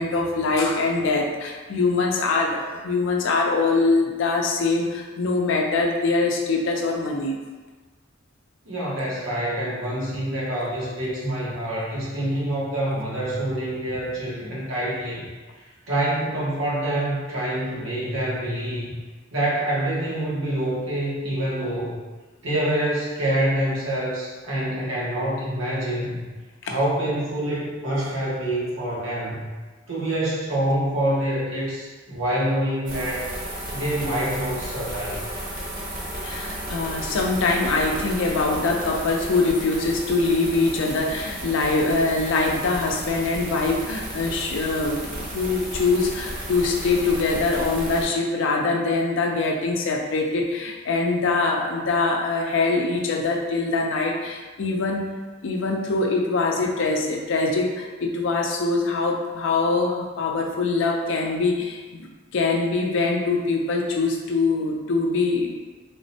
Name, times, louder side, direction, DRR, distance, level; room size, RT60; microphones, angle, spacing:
voice 1, 0.0-7.4 26.7-26.8 36.2-55.1 55.4-65.5, left 3 dB, 65° left, 1 dB, 0.4 m, -23 dB
voice 2, 8.6-15.3 15.9-19.0 19.3-21.9 22.4-26.2 26.6-29.5 29.9-33.3 33.7-35.2, right 1 dB, 85° right, -6 dB, 1.0 m, -26 dB
sound 1, 32.8-48.0, right 1 dB, 45° right, 0.8 m, -34 dB
3.5 x 2.1 x 2.7 m, 1.3 s
head